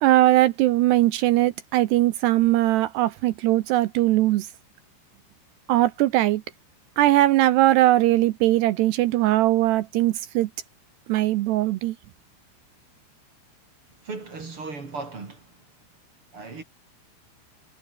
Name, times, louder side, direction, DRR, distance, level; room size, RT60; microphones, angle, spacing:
voice 1, 0.0-4.5 5.7-6.4 7.0-10.5 11.1-12.0, right 15 dB, 80° right, 2.4 m, -20 dB
voice 2, 14.0-15.5 16.3-16.6, right 4 dB, 30° right, 3.6 m, -36 dB
omnidirectional pair, 5.9 m